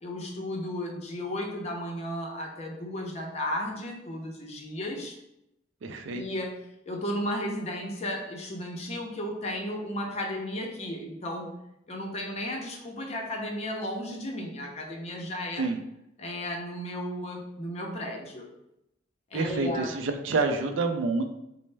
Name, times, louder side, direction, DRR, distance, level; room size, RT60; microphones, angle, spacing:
voice 1, 0.0-5.1 6.1-6.6 6.9-11.5 11.9-15.7 16.2-18.5 19.3-19.9, left 1 dB, 35° left, 1 dB, 0.5 m, -34 dB
voice 2, 5.8-6.2 15.6-15.8 19.3-21.2, right 3 dB, 75° right, 5 dB, 0.4 m, -28 dB
4.2 x 2.0 x 3.2 m, 0.83 s
head